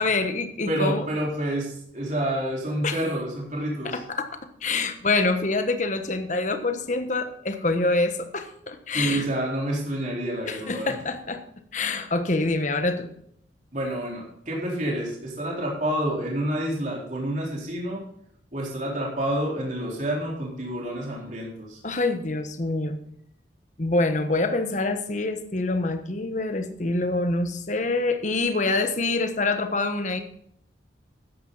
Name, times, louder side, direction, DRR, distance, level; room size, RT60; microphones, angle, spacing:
voice 1, 0.0-1.1 2.8-3.0 3.8-4.3 4.6-9.2 10.5-11.4 11.7-13.1 21.8-23.0 23.8-30.2, left 3 dB, 40° left, 7 dB, 1.2 m, -26 dB
voice 2, 0.7-4.0 8.9-10.9 13.7-18.0 18.5-21.8, right 1 dB, 45° right, -3 dB, 3.9 m, -28 dB
13.5 x 10.5 x 4.0 m, 0.68 s
head